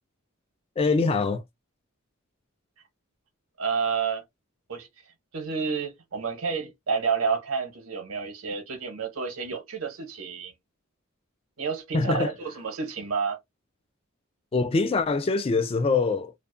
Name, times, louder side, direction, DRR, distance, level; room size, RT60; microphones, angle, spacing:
voice 1, 0.8-1.4 11.9-12.3 14.5-16.3, left 4 dB, 25° left, 0.3 m, -24 dB
voice 2, 3.6-4.2 4.7-4.9 5.3-10.5 11.6-13.4, right 5 dB, 90° right, 0.9 m, -30 dB
2.5 x 2.1 x 2.5 m
head